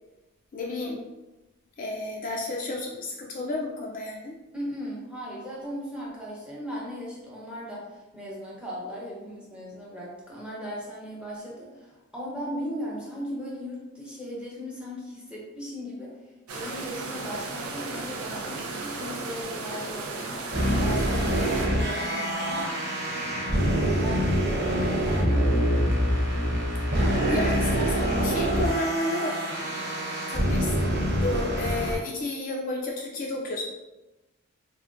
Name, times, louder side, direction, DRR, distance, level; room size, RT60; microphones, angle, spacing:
voice 1, 0.5-1.0 1.8-4.4 24.7-25.0 27.0-29.3 30.3-33.6, left 2 dB, 40° left, -1 dB, 0.3 m, -32 dB
voice 2, 4.5-16.1 16.5-20.5 20.8-22.6 23.5-25.5, equal, 5° right, -6 dB, 0.7 m, -37 dB
sound 1, 16.5-21.7, right 3 dB, 85° right, 0.5 m, -35 dB
sound 2, 20.5-32.0, equal, 55° right, 0.8 m, -25 dB
3.5 x 2.1 x 2.4 m, 1.1 s
head